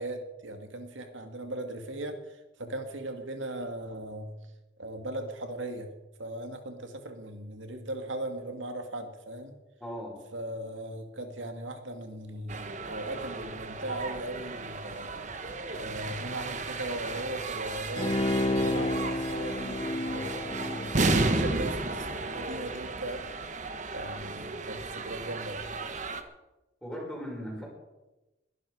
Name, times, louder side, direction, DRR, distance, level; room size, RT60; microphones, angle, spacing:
voice 1, 0.0-4.3 4.8-5.9 6.2-9.5 10.3-15.4 15.7-23.6 23.9-25.7, right 1 dB, 80° right, 6 dB, 2.2 m, -38 dB
voice 2, 9.8-10.2 26.8-27.7, equal, ahead, -3 dB, 5.6 m, -38 dB
sound 1, 12.5-26.2, right 3 dB, 40° right, 1.2 m, -34 dB
Bowed string instrument, 18.0-22.6 23.0-23.1, left 1 dB, 30° left, 0.5 m, -31 dB
21.0 x 11.5 x 5.0 m, 1.0 s
head